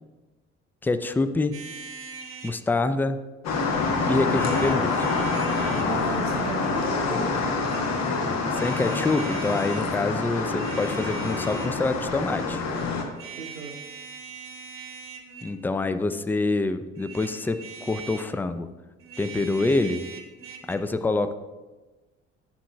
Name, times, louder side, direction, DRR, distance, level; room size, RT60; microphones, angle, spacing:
voice 1, 0.8-1.5 2.4-3.2 4.1-5.0 8.5-12.6 15.4-18.7 19.2-20.0 20.7-21.3, left 3 dB, 5° left, 10 dB, 0.3 m, -26 dB
sound 1, 1.5-2.6 4.3-5.9 7.4-7.8 8.5-9.9 10.4-11.8 13.1-15.6 16.9-18.3 19.0-20.8, right 6 dB, 35° right, 1.0 m, -41 dB
sound 2, 3.4-13.0, left 3 dB, 50° left, 1.1 m, -26 dB
voice 2, 5.5-7.6 13.4-13.8, right 4 dB, 85° right, 6 dB, 0.7 m, -36 dB
11.0 x 7.2 x 2.2 m, 1.2 s
figure-of-eight pair, 50°, 36 cm